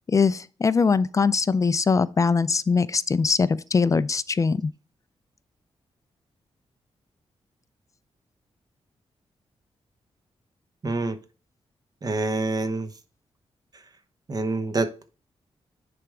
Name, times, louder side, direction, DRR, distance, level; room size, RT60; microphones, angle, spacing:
voice 1, 0.1-4.7, left 5 dB, 30° left, 0.4 m, -22 dB
voice 2, 10.8-11.2 12.0-12.9 14.3-15.1, right 3 dB, 35° right, 1.0 m, -26 dB
10.0 x 3.4 x 4.9 m
wide cardioid pair, 120°, 11 cm